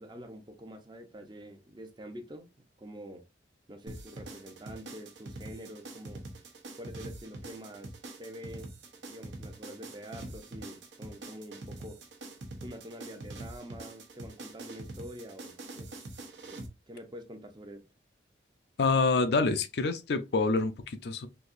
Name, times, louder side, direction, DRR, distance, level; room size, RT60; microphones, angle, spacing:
voice 1, 0.0-2.5 2.8-3.2 3.7-6.3 6.7-8.7 9.1-12.0 12.6-15.9 16.4-17.9, equal, 25° right, 0.6 m, -46 dB
sound 1, 3.9-16.7, right 2 dB, 85° right, 1.0 m, -44 dB
voice 2, 18.8-21.3, left 3 dB, 60° left, 0.4 m, -27 dB
4.0 x 2.8 x 2.4 m
head